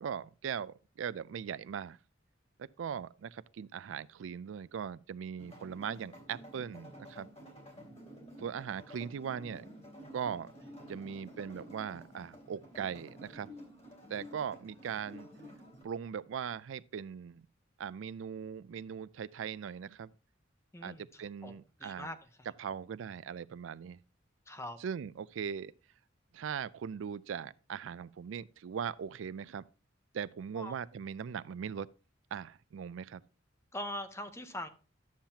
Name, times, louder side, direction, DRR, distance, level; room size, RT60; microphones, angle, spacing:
voice 1, 0.0-2.0 2.6-7.3 8.4-9.7 10.1-10.5 10.9-13.5 14.1-15.3 15.8-17.5 17.8-20.1 20.8-22.1 22.6-24.0 24.8-25.7 26.3-29.6 30.1-31.9 32.3-33.2, right 7 dB, 85° right, 0.4 m, -40 dB
sound 1, 5.4-15.8, equal, 35° left, 3.2 m, -51 dB
voice 2, 20.7-21.5 21.8-22.5 24.5-24.8 30.6-30.7 33.7-34.7, left 1 dB, 15° left, 0.7 m, -42 dB
11.5 x 7.3 x 2.9 m
head